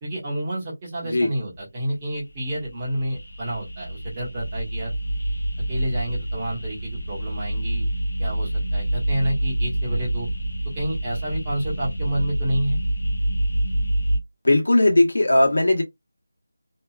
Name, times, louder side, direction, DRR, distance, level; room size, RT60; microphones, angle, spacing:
voice 1, 0.0-4.9 5.7-7.8 8.2-10.3 10.7-12.8, right 1 dB, 15° right, 1.0 m, -29 dB
sound 1, 2.3-14.2, right 1 dB, 45° left, 0.7 m, -27 dB
voice 2, 14.4-15.8, left 1 dB, 70° left, 1.1 m, -18 dB
2.8 x 2.3 x 2.3 m
figure-of-eight pair, 180°, 0 cm